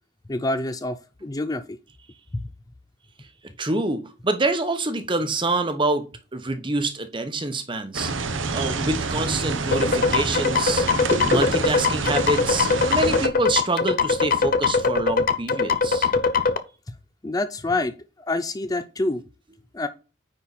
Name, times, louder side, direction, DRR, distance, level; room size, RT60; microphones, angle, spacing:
voice 1, 0.3-1.8 2.3-2.4 16.9-17.0 17.2-17.9 18.3-19.2 19.7-19.9, left 2 dB, 20° left, 0.4 m, -27 dB
voice 2, 3.6-6.1 6.3-8.1 8.5-16.1, right 2 dB, 25° right, 1.0 m, -26 dB
sound 1, 7.9-13.3, right 3 dB, 80° right, 1.0 m, -27 dB
sound 2, 9.7-16.6, left 4 dB, 45° left, 0.7 m, -21 dB
9.6 x 4.3 x 4.1 m
head